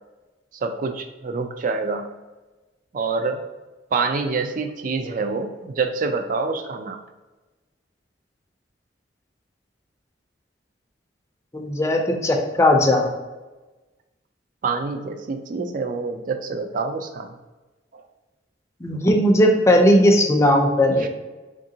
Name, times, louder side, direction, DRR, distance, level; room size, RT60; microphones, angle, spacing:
voice 1, 0.6-2.1 2.9-3.4 3.9-7.0 14.6-17.3 17.9-18.0 20.9-21.1, right 4 dB, 45° right, 6 dB, 0.4 m, -26 dB
voice 2, 11.5-13.1 18.8-21.1, left 1 dB, 15° left, 2 dB, 0.5 m, -17 dB
3.6 x 3.6 x 2.7 m, 1.2 s
head